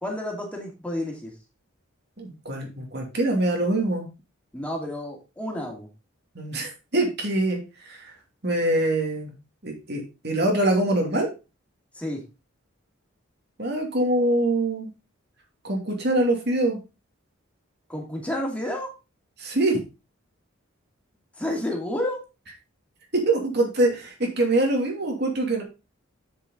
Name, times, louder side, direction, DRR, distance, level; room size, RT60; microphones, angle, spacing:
voice 1, 0.0-1.3 4.5-5.9 11.9-12.2 17.9-18.9 21.4-22.2, left 1 dB, 5° left, 0 dB, 2.4 m, -30 dB
voice 2, 2.2-4.1 6.3-8.1 8.4-9.3 9.6-11.3 13.6-14.9 15.6-16.8 19.4-19.8 23.1-25.6, right 1 dB, 55° right, 1 dB, 2.6 m, -24 dB
7.9 x 6.9 x 3.9 m, 0.29 s
head